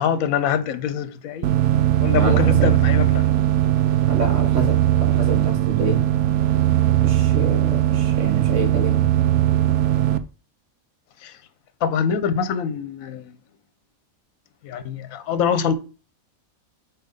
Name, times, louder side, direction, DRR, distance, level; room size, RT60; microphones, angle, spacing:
voice 1, 0.0-1.5 2.0-3.3 11.2-11.3 11.8-13.2 14.6-15.7, left 7 dB, 75° left, 1.1 m, -24 dB
sound 1, 1.4-10.2, right 13 dB, 80° right, 1.0 m, -19 dB
voice 2, 2.1-2.7 4.1-6.0 7.0-9.0, right 2 dB, 60° right, 1.8 m, -28 dB
6.0 x 4.2 x 5.2 m
omnidirectional pair, 1.5 m